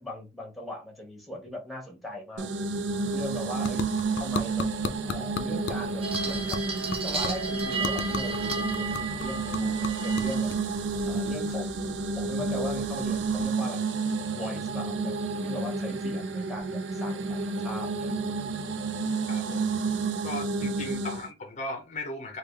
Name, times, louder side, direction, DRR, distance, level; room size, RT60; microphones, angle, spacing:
voice 1, 0.0-2.5 3.1-3.9 4.2-4.7 5.1-6.6 7.0-10.5 11.0-15.2 15.4-18.2 20.6-20.7, left 1 dB, ahead, 1.0 m, -39 dB
sound 1, 2.4-21.3, right 3 dB, 90° right, 0.5 m, -30 dB
sound 2, 2.7-12.1, left 4 dB, 90° left, 0.5 m, -39 dB
sound 3, 6.0-13.4, right 4 dB, 35° right, 0.6 m, -36 dB
voice 2, 19.3-19.6 20.2-22.4, left 2 dB, 40° left, 0.5 m, -37 dB
3.4 x 2.3 x 3.2 m
head